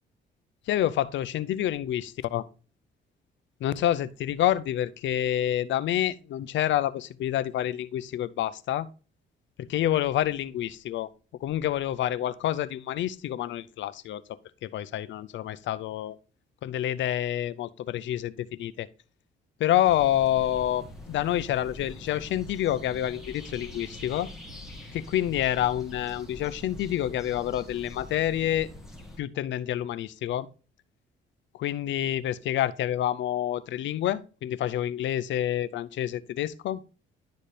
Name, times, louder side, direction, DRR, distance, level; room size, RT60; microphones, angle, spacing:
voice 1, 0.7-2.5 3.6-8.9 9.7-11.1 11.4-14.2 14.6-16.2 16.6-18.9 19.6-24.3 24.9-28.7 29.2-30.5 31.6-36.8, left 12 dB, 70° left, 0.5 m, -28 dB
sound 1, 19.8-29.2, left 1 dB, ahead, 1.9 m, -44 dB
11.5 x 4.2 x 3.3 m
cardioid pair, 90°, 20 cm